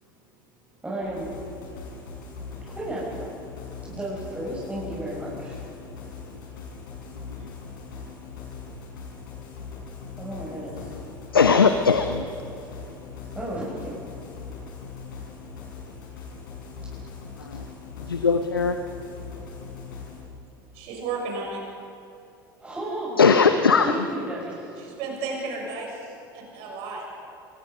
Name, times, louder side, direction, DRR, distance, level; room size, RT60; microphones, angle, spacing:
voice 1, 0.8-1.3 2.7-3.3 3.9-5.6 10.2-10.9 13.3-14.0 22.6-23.2 23.8-24.8, right 1 dB, 10° right, -7 dB, 6.5 m, -33 dB
sound 1, 1.0-20.2, left 5 dB, 70° left, 5.8 m, -40 dB
voice 2, 11.3-12.3 17.4-17.6 18.0-18.8 23.2-24.0, left 5 dB, 85° left, 8 dB, 0.9 m, -19 dB
voice 3, 20.7-21.6 24.8-26.0 26.3-27.1, right 4 dB, 55° right, 0 dB, 6.7 m, -33 dB
26.0 x 20.5 x 5.3 m, 2.9 s
figure-of-eight pair, 70°, 12 cm